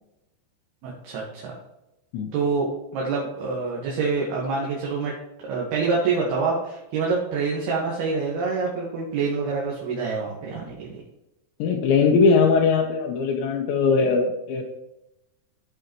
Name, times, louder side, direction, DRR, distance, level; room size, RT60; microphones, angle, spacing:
voice 1, 0.8-1.6 2.3-5.1 5.4-10.9, right 4 dB, 70° right, -3 dB, 3.4 m, -26 dB
voice 2, 11.6-14.6, left 4 dB, 85° left, 0 dB, 3.2 m, -20 dB
14.5 x 5.6 x 3.1 m, 0.91 s
omnidirectional pair, 5.0 m